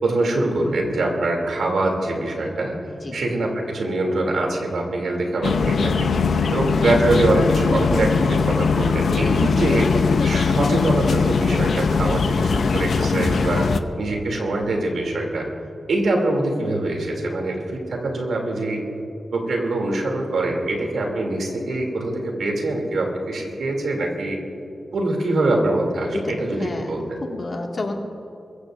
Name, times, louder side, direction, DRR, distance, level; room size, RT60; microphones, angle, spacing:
voice 1, 0.0-2.8 3.1-6.1 6.5-9.9 10.2-13.7 14.0-15.5 15.9-18.8 19.3-24.4 24.9-27.0, right 2 dB, 85° right, 1 dB, 2.9 m, -23 dB
sound 1, 5.4-13.8, left 5 dB, 80° left, 0.7 m, -20 dB
voice 2, 12.1-12.4 26.1-28.0, left 2 dB, 45° left, 1 dB, 2.1 m, -31 dB
23.0 x 15.5 x 2.6 m, 2.8 s
wide cardioid pair, 90°, 0 cm